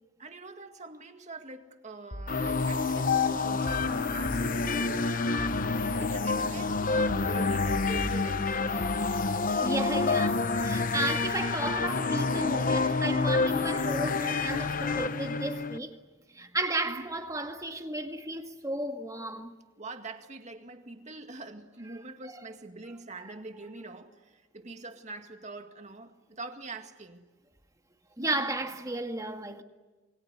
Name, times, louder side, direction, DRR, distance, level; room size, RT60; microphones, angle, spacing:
voice 1, 0.2-5.6 6.0-9.2 16.8-17.1 19.8-27.3 28.2-28.5, right 2 dB, 35° right, 2.1 m, -44 dB
sound 1, 2.1-3.0 3.7-5.0 5.4-6.4 7.1-9.0, equal, 80° left, 4.7 m, -40 dB
sound 2, 2.3-15.8, left 4 dB, 45° left, 0.9 m, -28 dB
voice 2, 9.6-16.0 16.3-19.6 22.3-22.4 23.2-23.3 28.2-29.6, right 2 dB, 15° right, 1.9 m, -33 dB
28.0 x 23.0 x 8.1 m
head